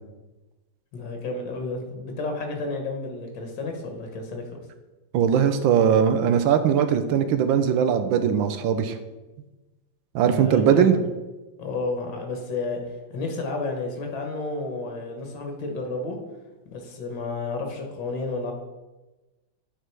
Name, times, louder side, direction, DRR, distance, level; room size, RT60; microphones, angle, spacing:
voice 1, 0.9-4.5 10.2-11.0 11.6-12.8 13.1-16.2 16.7-18.5, left 3 dB, 65° left, 3 dB, 2.1 m, -31 dB
voice 2, 5.1-9.0 10.1-11.0, right 8 dB, 75° right, 9 dB, 1.3 m, -20 dB
8.9 x 4.4 x 4.6 m, 1.1 s
omnidirectional pair, 2.2 m